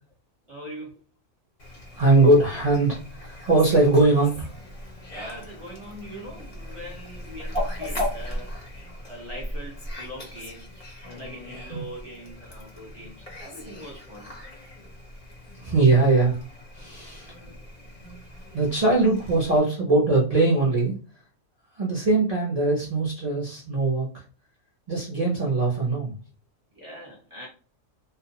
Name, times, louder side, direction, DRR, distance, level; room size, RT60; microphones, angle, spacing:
voice 1, 0.5-1.0 5.1-8.5 9.1-14.4 26.7-27.5, equal, 25° right, 0.9 m, -41 dB
Fowl, 1.6-19.6, left 1 dB, 45° left, 0.5 m, -38 dB
voice 2, 2.0-4.5 11.7-11.8 15.6-16.4 16.8-17.3 18.5-20.9 21.8-24.1 24.9-26.1, right 2 dB, 45° right, 0.5 m, -21 dB
2.3 x 2.1 x 2.8 m
omnidirectional pair, 1.4 m